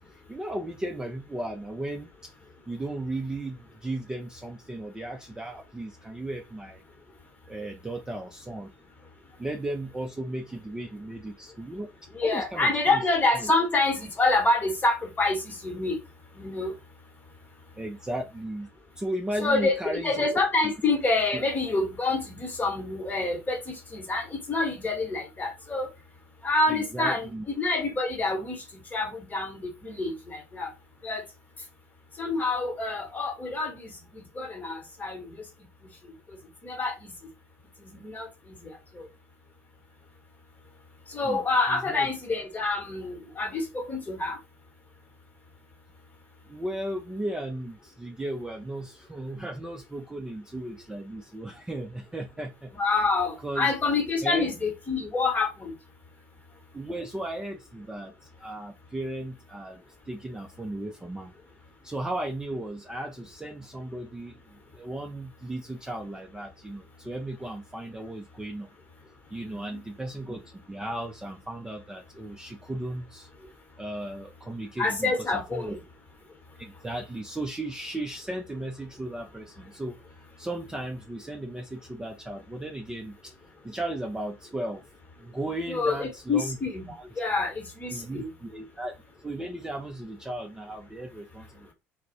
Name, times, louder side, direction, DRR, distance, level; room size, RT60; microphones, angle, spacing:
voice 1, 0.1-2.3 2.7-6.8 7.5-8.7 9.4-11.9 12.2-13.0 13.4-13.5 17.8-18.7 19.0-20.3 20.6-20.7 21.3-21.4 26.7-27.4 41.2-41.4 41.7-42.1 46.5-52.7 53.4-53.7 54.2-54.5 56.7-58.1 58.4-59.8 60.1-61.3 61.8-68.7 69.3-73.3 73.8-75.8 76.6-80.0 80.4-83.3 83.6-84.8 85.2-86.6 87.0-87.1 87.9-89.0 89.2-91.7, right 1 dB, 10° right, 0.4 m, -35 dB
voice 2, 12.1-16.0 16.4-16.7 19.4-19.8 20.0-25.9 26.4-28.6 28.9-30.7 31.0-31.2 32.2-35.3 36.6-37.1 37.8-38.3 38.6-38.7 41.1-44.4 52.7-55.7 69.4-69.6 74.8-75.8 85.7-88.3, left 3 dB, 25° left, 1.0 m, -27 dB
2.3 x 2.0 x 2.9 m
figure-of-eight pair, 60°, 7 cm